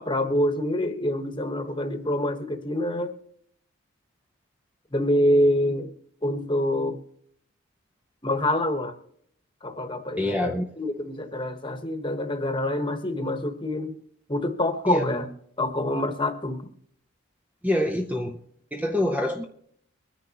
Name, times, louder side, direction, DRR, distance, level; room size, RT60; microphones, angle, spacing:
voice 1, 0.0-3.1 4.9-5.9 6.2-7.0 8.2-8.9 9.6-14.0 14.3-15.3 15.6-16.7, left 1 dB, 25° left, 6 dB, 1.2 m, -26 dB
voice 2, 10.2-10.6 14.9-15.0 17.6-18.4 18.7-19.5, left 1 dB, 5° right, 4 dB, 0.6 m, -25 dB
23.5 x 10.0 x 2.9 m, 0.69 s
head